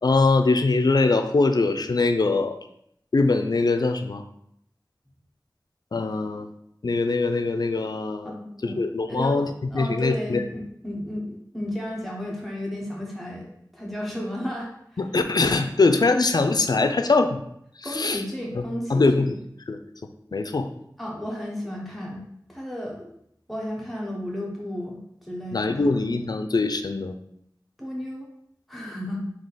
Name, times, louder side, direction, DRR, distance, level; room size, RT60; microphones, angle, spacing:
voice 1, 0.0-2.6 3.1-4.2 5.9-6.5 6.8-8.3 8.6-9.5 9.7-10.4 15.0-17.4 17.8-18.2 18.5-18.6 18.9-19.4 19.7-19.8 20.3-20.7 25.5-27.1, left 3 dB, 65° left, 7 dB, 0.4 m, -22 dB
voice 2, 8.3-8.8 9.1-9.4 9.7-13.5 13.7-14.7 16.6-17.0 17.8-19.3 21.0-22.2 22.5-23.2 23.5-25.9 27.8-28.3 28.7-29.2, left 1 dB, ahead, -3 dB, 1.2 m, -33 dB
3.7 x 2.8 x 4.1 m, 0.73 s
wide cardioid pair, 50°, 7 cm